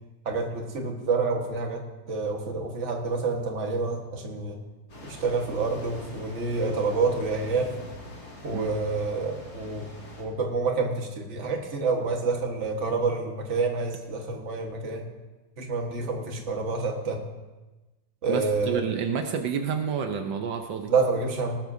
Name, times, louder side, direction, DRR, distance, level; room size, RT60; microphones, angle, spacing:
voice 1, 0.3-4.6 5.0-7.7 8.4-9.9 10.2-15.1 15.6-17.2 18.2-18.8 20.9-21.6, right 4 dB, 40° right, 2 dB, 1.6 m, -28 dB
sound 1, 4.9-10.2, left 2 dB, 55° left, 2.8 m, -44 dB
voice 2, 18.3-20.9, right 7 dB, 75° right, 5 dB, 1.4 m, -29 dB
18.5 x 13.5 x 2.7 m, 1.1 s
omnidirectional pair, 2.1 m